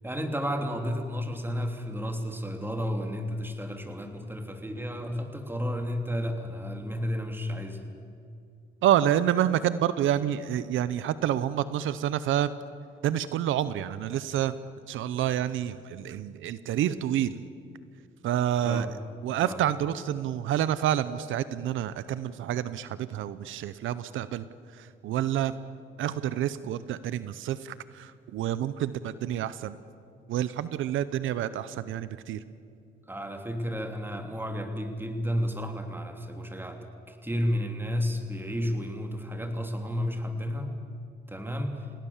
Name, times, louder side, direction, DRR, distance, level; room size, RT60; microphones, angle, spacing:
voice 1, 0.0-7.9 18.6-18.9 19.4-19.6 33.1-40.7 41.3-41.9, equal, 10° right, 5 dB, 3.2 m, -32 dB
voice 2, 8.8-12.5 13.0-14.5 14.9-17.4 18.2-18.9 19.2-24.4 24.7-25.5 26.0-29.8 30.3-32.4, right 11 dB, 80° right, 15 dB, 0.8 m, -28 dB
29.0 x 18.5 x 7.4 m, 2.5 s
cardioid pair, 90°, 20 cm